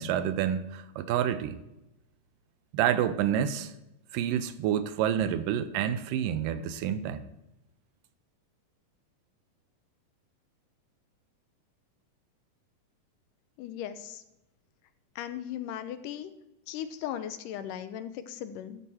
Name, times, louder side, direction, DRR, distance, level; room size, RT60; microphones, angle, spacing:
voice 1, 0.0-1.6 2.7-3.7 4.1-7.3, right 10 dB, 85° right, 11 dB, 2.3 m, -28 dB
voice 2, 13.6-14.2 15.2-16.3 16.7-18.8, left 10 dB, 85° left, 10 dB, 2.2 m, -37 dB
12.5 x 4.2 x 6.2 m, 0.91 s
omnidirectional pair, 3.9 m